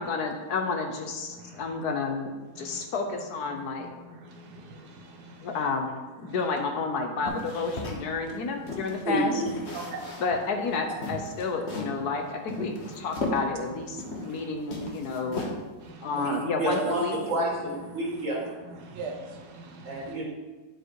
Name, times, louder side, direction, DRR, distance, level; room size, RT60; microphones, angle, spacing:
voice 1, 0.0-3.9 5.4-5.9 6.2-9.3 10.2-15.5 16.0-17.2, left 4 dB, 70° left, 4 dB, 1.4 m, -30 dB
voice 2, 1.3-1.8 2.6-2.8 3.5-5.6 6.2-6.3 7.2-7.4 8.0-8.1 8.6-9.0 9.7-10.2 12.6-13.1 13.5-13.6 14.0-14.9 15.2-15.4 15.8-16.3 18.1-18.2 18.7-20.2, right 3 dB, 75° right, 3 dB, 1.6 m, -44 dB
sound 1, 7.2-9.0 9.5-10.4 10.7-10.8 11.0-12.0 12.5-14.4 14.7-15.8, left 2 dB, 45° left, 1.4 m, -36 dB
voice 3, 9.0-9.5 16.2-18.5 19.8-20.2, right 1 dB, 50° right, -3 dB, 2.4 m, -29 dB
10.0 x 4.7 x 4.7 m, 1.3 s
omnidirectional pair, 1.7 m